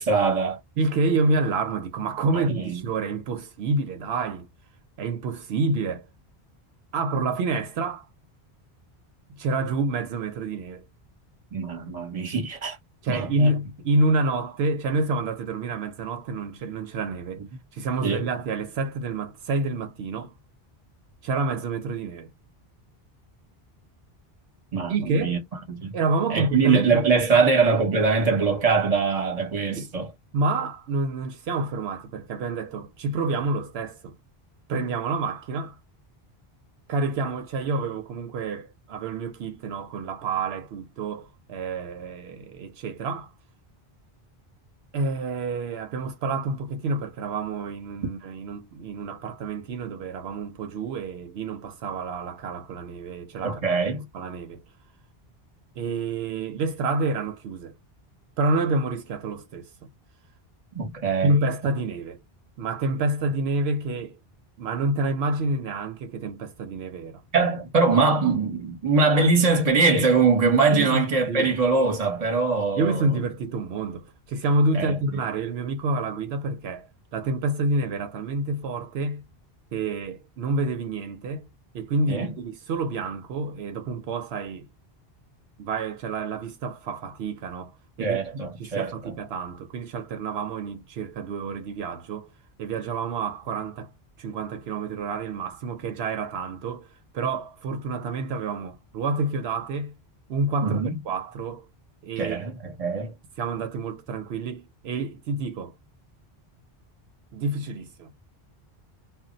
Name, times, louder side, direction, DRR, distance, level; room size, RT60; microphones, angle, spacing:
voice 1, 0.0-0.6 2.3-2.8 11.5-12.8 13.1-13.5 18.0-18.3 24.7-25.4 25.7-25.9 26.3-30.1 53.4-54.0 60.7-61.3 67.3-73.1 74.7-75.0 82.1-82.3 88.0-88.9 100.6-101.0 102.2-103.1, right 4 dB, 40° right, 0.9 m, -22 dB
voice 2, 0.8-4.5 5.0-6.0 6.9-8.1 9.3-10.8 13.0-17.4 17.7-20.3 21.2-22.3 24.9-25.4 25.9-27.4 29.7-29.9 30.3-34.2 34.7-35.8 36.9-43.3 44.9-53.6 53.9-54.6 55.8-57.8 58.4-59.7 61.2-62.2 62.6-64.2 64.6-67.2 70.7-71.0 71.3-71.5 72.8-79.2 79.7-81.5 81.7-84.7 85.6-88.2 88.6-92.3 92.6-93.9 94.2-96.9 97.1-99.9 100.3-100.8 101.0-101.7 102.0-102.5 103.4-105.7 107.3-108.1, right 3 dB, 80° right, 0.8 m, -28 dB
2.3 x 2.0 x 3.8 m
omnidirectional pair, 1.1 m